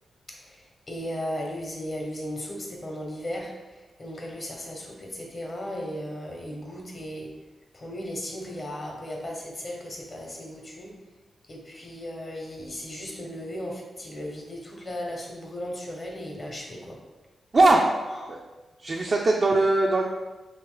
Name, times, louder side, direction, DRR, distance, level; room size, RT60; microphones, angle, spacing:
voice 1, 0.3-7.3 7.7-10.9 11.5-17.0 18.2-18.4, equal, 45° left, 0 dB, 1.0 m, -36 dB
voice 2, 17.5-18.0 18.3-18.4 18.8-20.1, right 2 dB, 50° right, -1 dB, 0.4 m, -20 dB
3.0 x 2.9 x 3.7 m, 1.1 s
supercardioid pair, 50°, 0 cm